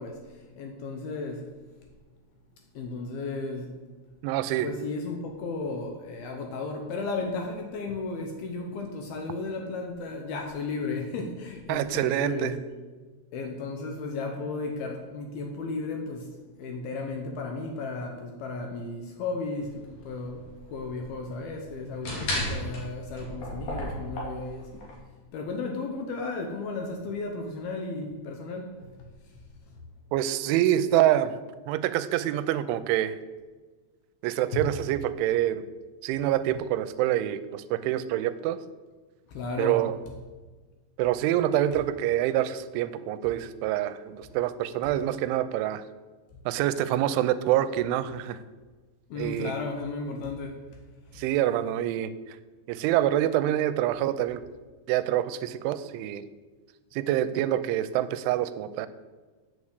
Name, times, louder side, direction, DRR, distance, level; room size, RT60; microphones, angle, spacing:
voice 1, 0.0-1.5 2.7-3.8 4.6-12.6 13.3-24.9 25.3-28.9 29.7-29.8 34.5-34.7 39.3-39.8 49.1-50.6 51.1-51.2, left 3 dB, 70° left, 3 dB, 2.5 m, -34 dB
voice 2, 4.2-4.7 11.7-12.6 30.1-31.4 31.7-33.2 34.2-35.6 36.0-38.6 39.6-40.0 41.0-45.8 46.5-48.4 49.2-49.5 51.2-52.1 52.7-54.4 54.9-56.2 56.9-58.9, right 12 dB, 90° right, 13 dB, 3.0 m, -26 dB
sound 1, 19.6-24.9, left 1 dB, 45° left, 3.8 m, -35 dB
8.6 x 7.8 x 8.1 m, 1.3 s
omnidirectional pair, 5.4 m